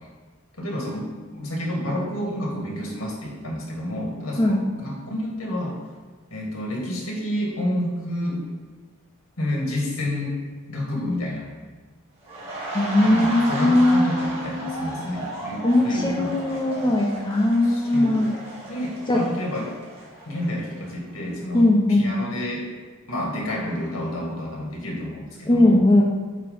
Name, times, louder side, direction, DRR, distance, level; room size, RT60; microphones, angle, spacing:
voice 1, 0.6-5.8 6.3-8.5 9.4-10.4 10.7-11.5 13.0-16.3 16.6-16.9 17.7-18.3 18.7-19.7 20.3-21.6 22.0-22.7 23.1-25.8, left 1 dB, 80° left, -2 dB, 2.0 m, -29 dB
sound 1, 12.2-21.1 21.4-21.6, right 1 dB, 25° right, 1.9 m, -35 dB
voice 2, 12.7-14.8 15.6-18.3 19.1-19.2 21.5-22.1 25.5-26.0, left 1 dB, 20° left, -1 dB, 0.8 m, -19 dB
8.5 x 3.1 x 5.5 m, 1.4 s
head